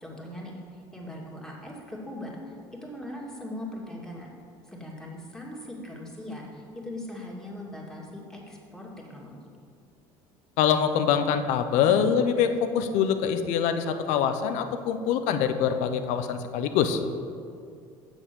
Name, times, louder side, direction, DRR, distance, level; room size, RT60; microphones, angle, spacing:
voice 1, 0.0-2.6 2.8-4.3 4.6-9.3, left 1 dB, 5° left, -3 dB, 2.4 m, -40 dB
voice 2, 10.6-17.0, left 8 dB, 75° left, 8 dB, 0.7 m, -24 dB
7.5 x 6.2 x 6.9 m, 2.3 s
supercardioid pair, 80°, 12 cm